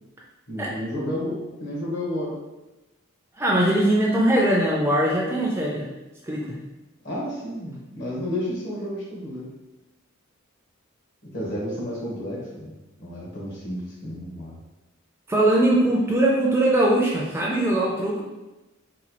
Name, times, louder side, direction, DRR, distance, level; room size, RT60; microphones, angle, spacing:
voice 1, 0.5-2.4 7.0-9.5 11.2-12.7 13.0-14.5, left 1 dB, 55° left, -4 dB, 1.0 m, -31 dB
voice 2, 3.4-5.9 6.2-6.6 15.3-18.2, right 1 dB, 10° right, -3 dB, 0.3 m, -21 dB
4.0 x 2.3 x 2.9 m, 1.0 s
head